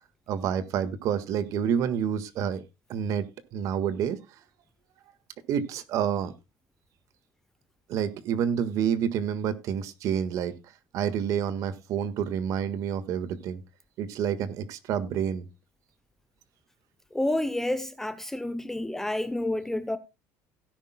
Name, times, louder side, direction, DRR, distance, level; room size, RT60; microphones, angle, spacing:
voice 1, 0.3-2.6 2.9-3.3 3.5-4.2 5.5-6.3 7.9-10.5 10.9-13.6 14.0-15.5, right 8 dB, 50° right, 1.6 m, -28 dB
voice 2, 17.1-20.0, left 1 dB, 5° left, 0.7 m, -29 dB
17.0 x 10.5 x 2.3 m
cardioid pair, 155°, 7 cm